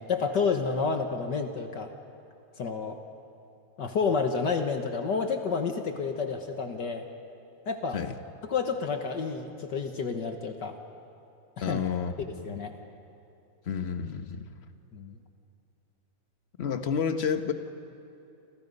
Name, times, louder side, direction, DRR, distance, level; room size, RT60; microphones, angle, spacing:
voice 1, 0.0-1.9 2.6-3.0 3.8-7.0 7.7-8.0 8.4-10.7 11.6-11.8 12.4-12.7 14.9-15.2, left 5 dB, 60° left, 5 dB, 1.7 m, -30 dB
voice 2, 11.6-12.1 12.5-12.6 13.7-14.5 16.6-17.5, left 7 dB, 40° left, 8 dB, 1.0 m, -30 dB
29.0 x 26.0 x 5.4 m, 2.7 s
omnidirectional pair, 2.3 m